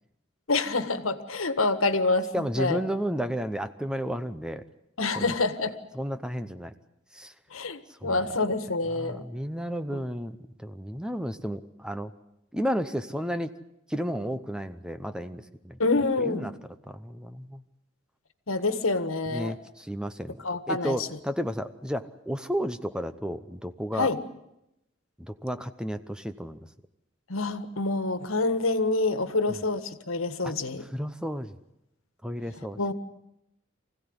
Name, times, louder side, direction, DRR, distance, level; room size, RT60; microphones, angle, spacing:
voice 1, 0.5-2.8 5.0-5.7 7.5-9.3 9.9-10.0 15.8-16.5 18.5-19.5 20.4-21.1 24.0-24.2 27.3-30.8 32.8-32.9, left 3 dB, 90° left, 10 dB, 1.6 m, -27 dB
voice 2, 2.3-4.6 5.1-5.3 5.9-6.7 7.1-7.3 8.0-8.2 8.9-12.1 12.5-13.5 13.9-15.8 16.2-16.5 16.9-17.6 19.3-20.4 20.7-24.1 25.2-26.6 29.5-29.6 30.4-30.5 30.9-31.5 32.2-32.8, equal, 5° right, 10 dB, 0.8 m, -32 dB
25.0 x 16.0 x 9.7 m, 0.86 s
head